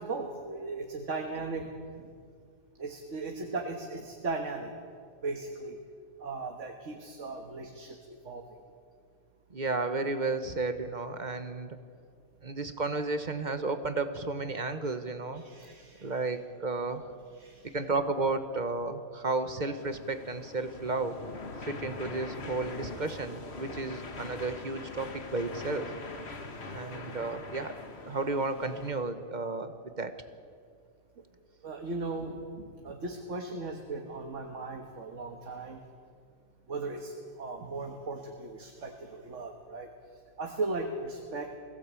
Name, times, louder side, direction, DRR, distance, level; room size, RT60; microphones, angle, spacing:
voice 1, 0.0-1.7 2.8-4.7 5.2-5.8 6.2-8.4 15.3-16.1 17.4-17.8 26.8-26.9 31.6-35.8 36.7-39.9 40.4-41.5, right 3 dB, 80° right, 3 dB, 1.7 m, -37 dB
voice 2, 9.5-11.8 12.4-15.4 16.0-17.1 17.6-21.1 21.6-25.9 26.7-30.1, right 3 dB, 40° right, 9 dB, 1.1 m, -33 dB
sound 1, 19.8-28.9, left 3 dB, 60° left, 1.7 m, -43 dB
21.0 x 16.0 x 8.3 m, 2.2 s
omnidirectional pair, 1.2 m